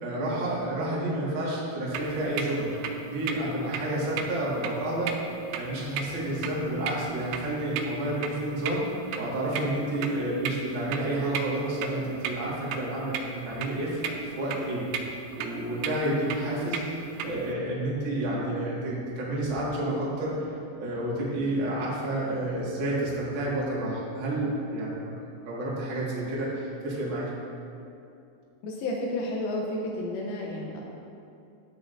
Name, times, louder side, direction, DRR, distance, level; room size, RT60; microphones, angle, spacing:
voice 1, 0.0-2.7 3.1-5.1 5.5-8.8 9.1-14.8 15.3-25.1 25.4-27.3, right 1 dB, 70° right, -7 dB, 1.1 m, -30 dB
sound 1, 1.9-17.5, right 6 dB, 90° right, 3.1 m, -37 dB
voice 2, 28.6-30.8, left 1 dB, 85° left, -1 dB, 2.2 m, -31 dB
12.5 x 8.5 x 2.6 m, 2.6 s
omnidirectional pair, 5.4 m